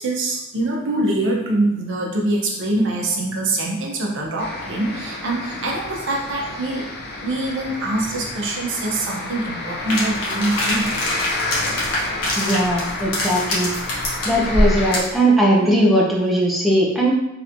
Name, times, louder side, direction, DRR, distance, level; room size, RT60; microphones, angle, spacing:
voice 1, 0.0-6.9 7.2-11.2, right 2 dB, 60° right, -1 dB, 0.7 m, -24 dB
sound 1, 4.4-15.0, left 2 dB, 45° left, 0.5 m, -30 dB
sound 2, 9.9-15.2, left 1 dB, 90° left, 0.9 m, -24 dB
voice 2, 12.4-13.7 14.3-17.1, right 1 dB, ahead, -4 dB, 0.5 m, -18 dB
3.3 x 2.9 x 2.5 m, 0.93 s
head